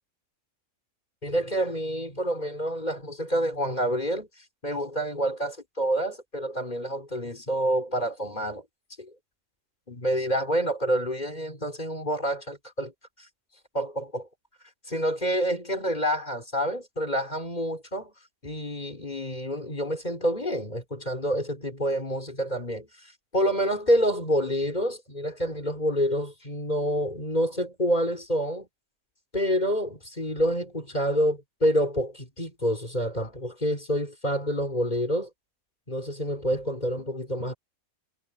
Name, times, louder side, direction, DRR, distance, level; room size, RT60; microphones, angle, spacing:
voice 1, 1.2-4.3 4.6-8.6 9.0-9.1 9.9-12.9 13.7-14.3 14.9-18.1 18.4-28.7 29.3-35.3 35.9-37.5, equal, 30° left, 3.8 m, -28 dB
omnidirectional pair, 1.5 m